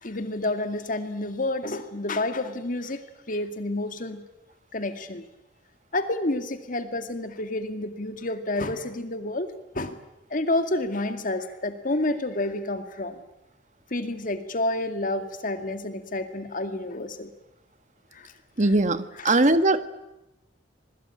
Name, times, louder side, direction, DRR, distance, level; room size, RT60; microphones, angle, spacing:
voice 1, 0.0-3.0 3.3-4.2 4.7-5.2 5.9-9.5 9.7-10.0 10.3-13.2 13.9-17.3 18.1-18.3 19.2-19.4, left 2 dB, 45° left, 8 dB, 2.2 m, -29 dB
voice 2, 18.6-19.8, right 2 dB, 40° right, 12 dB, 1.4 m, -20 dB
26.5 x 21.5 x 8.7 m, 0.94 s
head